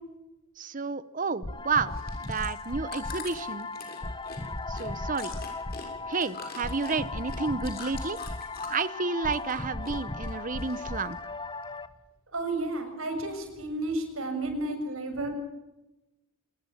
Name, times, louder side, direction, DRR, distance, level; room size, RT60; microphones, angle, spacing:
voice 1, 0.6-1.9 2.2-3.7 4.7-5.3 6.1-8.2 8.7-11.2, right 4 dB, 40° right, 16 dB, 1.0 m, -31 dB
sound 1, 1.4-11.9, left 2 dB, 20° left, 1.1 m, -36 dB
Chewing mastication, 1.8-8.9 9.2-10.0 10.2-11.1 11.6-11.7, left 5 dB, 45° left, 6.7 m, -45 dB
voice 2, 12.3-15.3, right 2 dB, 75° right, 6 dB, 6.7 m, -32 dB
27.0 x 20.0 x 7.4 m, 1.0 s
head